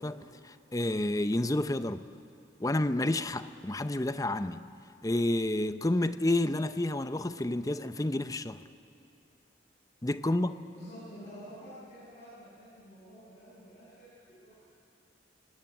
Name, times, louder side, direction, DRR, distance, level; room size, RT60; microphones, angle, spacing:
voice 1, 0.0-2.1 2.6-4.6 5.0-8.6 10.0-10.6, left 1 dB, 20° left, 0.6 m, -30 dB
voice 2, 10.7-14.1 14.4-14.6, equal, 35° left, 7.8 m, -49 dB
29.0 x 18.0 x 9.9 m
head